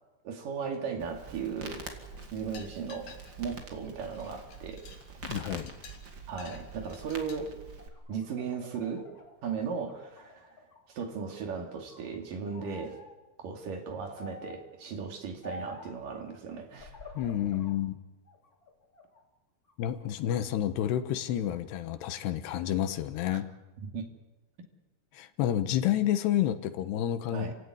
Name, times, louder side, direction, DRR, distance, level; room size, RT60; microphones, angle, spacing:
voice 1, 0.2-1.8 2.3-4.9 6.3-7.6 8.1-9.1 9.4-10.5 10.9-13.0 13.4-16.9 23.3-23.4 23.9-24.1 27.3-27.5, right 6 dB, 60° right, 4 dB, 3.9 m, -36 dB
sound 1, 0.7-1.3 1.5-3.6 3.9-7.4, left 6 dB, 60° left, 3.8 m, -52 dB
Crackle, 1.0-7.9, right 4 dB, 35° right, 2.4 m, -45 dB
voice 2, 5.2-5.7 17.2-18.0 19.8-23.5 25.1-27.5, left 11 dB, 85° left, 11 dB, 3.3 m, -29 dB
sound 2, 7.6-10.8 11.2-12.1 12.5-13.1 14.1-14.7 15.4-16.0 16.7-17.8 18.3-19.2 19.7-20.4, left 1 dB, 25° left, 2.8 m, -48 dB
28.5 x 16.5 x 9.7 m, 1.1 s
omnidirectional pair, 4.7 m